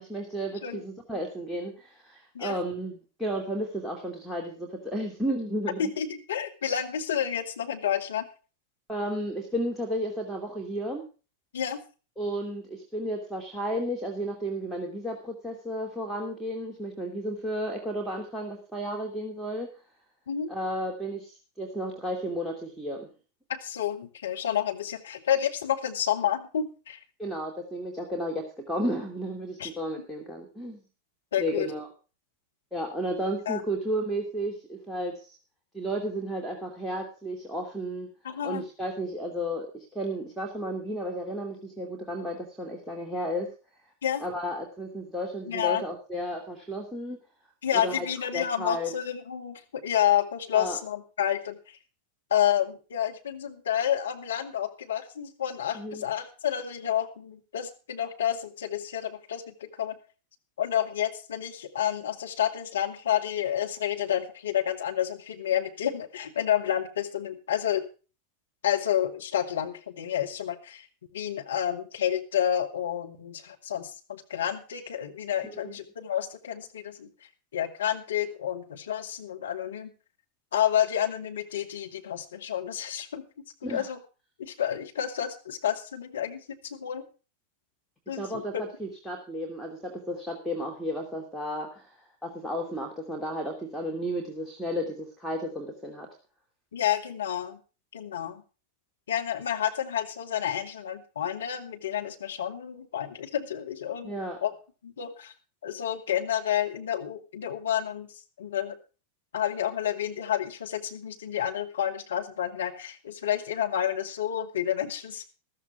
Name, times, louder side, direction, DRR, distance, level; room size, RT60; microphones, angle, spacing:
voice 1, 0.0-5.9 8.9-11.0 12.2-19.8 20.5-23.1 27.2-30.8 31.4-31.9 32.7-35.4 35.7-38.1 38.4-43.5 44.2-47.2 47.7-48.1 48.3-48.9 50.5-50.8 55.7-56.0 75.5-75.7 83.6-83.9 88.2-96.1 104.0-104.4, equal, ahead, 0 dB, 2.6 m, -33 dB
voice 2, 5.8-8.3 11.5-11.8 20.3-20.5 23.5-27.0 29.6-29.7 31.3-31.7 33.5-33.6 38.2-38.6 44.0-44.2 45.5-45.8 47.6-51.8 52.3-60.0 60.6-67.8 68.6-70.9 71.1-77.1 77.5-79.9 80.5-83.3 83.7-84.0 84.4-87.0 88.1-88.6 96.7-97.6 97.9-98.4 99.1-104.1 104.4-104.5 104.8-105.3 105.6-108.1 108.4-108.7 109.3-115.3, left 10 dB, 65° left, 4 dB, 2.2 m, -29 dB
14.5 x 13.5 x 3.5 m, 0.35 s
figure-of-eight pair, 90°, 0 cm